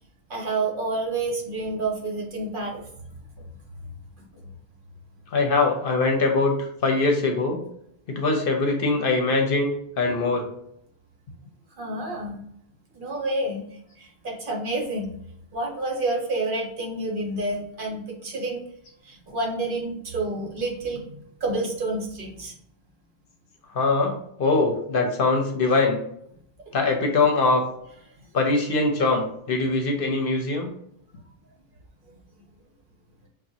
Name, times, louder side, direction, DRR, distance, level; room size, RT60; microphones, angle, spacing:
voice 1, 0.3-2.8 4.2-4.3 11.7-12.4 12.9-13.6 14.0-15.1 15.5-18.6 19.0-22.6 32.1-32.2, right 2 dB, 55° right, -1 dB, 1.0 m, -29 dB
voice 2, 5.3-7.6 8.1-9.7 10.0-10.5 23.7-26.0 26.7-27.6 28.3-30.7, left 3 dB, 60° left, 3 dB, 0.8 m, -22 dB
5.9 x 2.2 x 2.7 m, 0.72 s
omnidirectional pair, 1.1 m